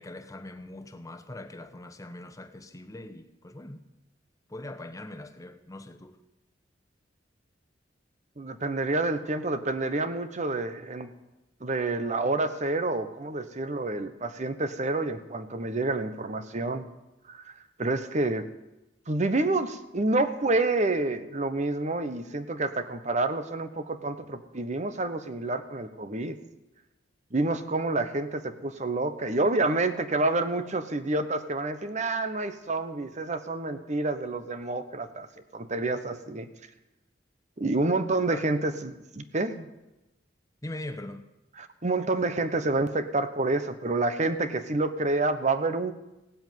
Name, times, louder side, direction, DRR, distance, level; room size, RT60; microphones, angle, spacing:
voice 1, 0.0-3.8 4.5-6.2 38.3-38.5 40.6-41.3, left 1 dB, 20° left, 1.1 m, -41 dB
voice 2, 8.4-11.1 11.6-16.9 17.3-17.5 17.8-18.5 19.1-26.4 27.3-35.3 35.5-36.5 37.6-39.7 41.6-45.9, right 2 dB, 40° right, 1.0 m, -28 dB
16.0 x 8.0 x 9.4 m
head